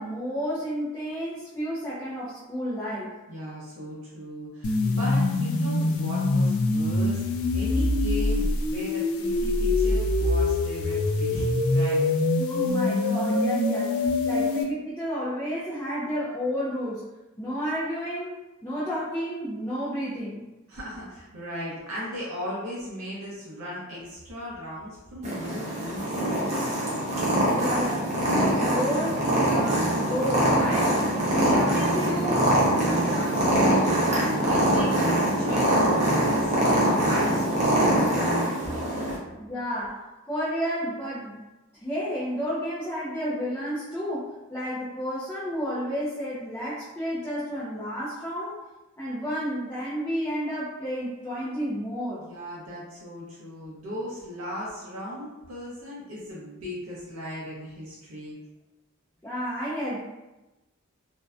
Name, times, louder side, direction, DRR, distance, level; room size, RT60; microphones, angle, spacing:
voice 1, 0.0-3.1 12.4-17.0 17.4-18.3 18.6-20.4 27.5-31.1 31.4-32.7 39.4-40.0 40.3-41.4 41.7-48.6 49.0-52.2 59.2-60.0, equal, 10° left, -10 dB, 0.4 m, -31 dB
voice 2, 3.3-7.2 7.5-12.0 20.7-26.4 32.9-38.1 52.2-58.4, equal, 70° right, -7 dB, 0.6 m, -37 dB
sound 1, 4.6-14.6, left 2 dB, 80° left, 0.3 m, -24 dB
Purr, 25.2-39.2, right 1 dB, 30° right, 0.6 m, -23 dB
2.6 x 2.1 x 2.3 m, 1.0 s
head